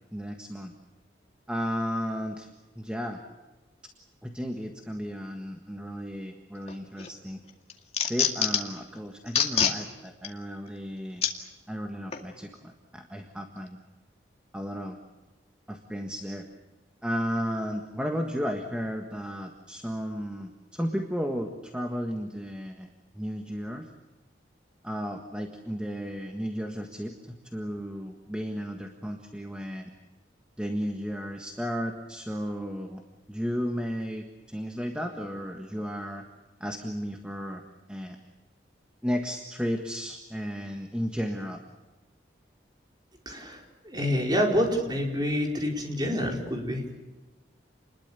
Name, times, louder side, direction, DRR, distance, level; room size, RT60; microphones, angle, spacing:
voice 1, 0.1-0.7 1.5-2.5 2.7-3.2 4.2-7.4 8.0-11.2 11.7-13.8 14.5-15.0 15.7-16.5 17.0-22.9 23.1-23.9 24.8-29.9 30.6-33.0 33.3-36.2 36.6-37.6 37.9-38.2 39.0-41.6, equal, 5° right, 3 dB, 1.6 m, -34 dB
sound 1, 6.7-7.1 7.5-8.8 9.3-9.8 10.2-10.3 11.2-11.3 12.1-12.2, left 7 dB, 35° left, 2.2 m, -25 dB
voice 2, 43.2-46.8, equal, 25° right, 1 dB, 4.7 m, -27 dB
28.5 x 21.0 x 7.0 m, 1.2 s
head